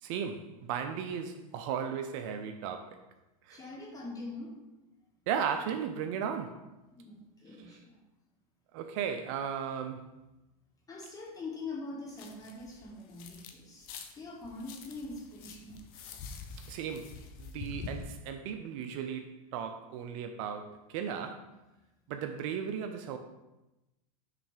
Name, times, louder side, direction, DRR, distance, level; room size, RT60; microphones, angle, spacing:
voice 1, 0.0-3.0 3.5-3.6 5.3-6.7 7.7-7.8 8.7-10.1 16.7-21.5 22.1-23.2, right 7 dB, 55° right, 7 dB, 0.6 m, -36 dB
voice 2, 3.5-4.5 6.9-8.0 10.9-13.9 14.1-15.8, left 3 dB, 20° left, -3 dB, 1.9 m, -43 dB
sound 1, 12.1-13.5 13.8-18.0, left 5 dB, 50° left, 0.8 m, -46 dB
5.9 x 3.2 x 5.0 m, 0.99 s
hypercardioid pair, 115°, 19 cm